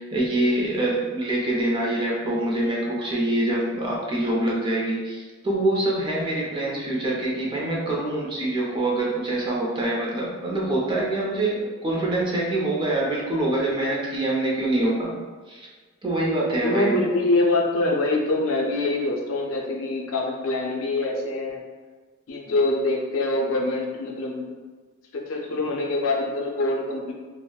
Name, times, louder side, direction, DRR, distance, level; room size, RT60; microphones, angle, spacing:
voice 1, 0.0-15.2 15.5-15.7 16.0-16.9, right 1 dB, 25° right, -4 dB, 0.5 m, -25 dB
voice 2, 6.6-7.0 16.6-21.6 22.3-24.4 25.1-27.1, left 2 dB, 70° left, 0 dB, 0.5 m, -25 dB
3.8 x 2.0 x 2.2 m, 1.4 s
head